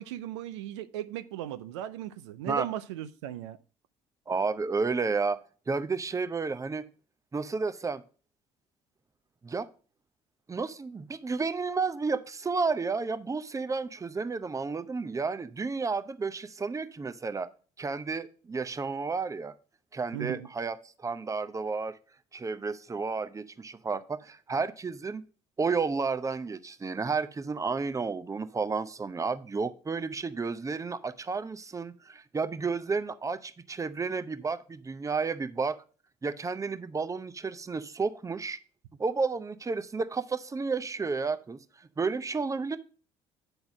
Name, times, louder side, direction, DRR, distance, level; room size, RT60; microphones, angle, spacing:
voice 1, 0.0-3.6 20.1-20.5, right 12 dB, 80° right, 0.5 m, -37 dB
voice 2, 4.3-5.4 5.7-6.8 7.3-8.0 9.4-9.7 10.5-17.5 17.8-19.5 19.9-20.8 21.0-22.0 22.3-25.2 25.6-35.8 36.2-38.6 39.0-41.6 42.0-42.8, right 4 dB, 20° right, 0.7 m, -31 dB
8.9 x 3.9 x 6.0 m
hypercardioid pair, 60°, 14 cm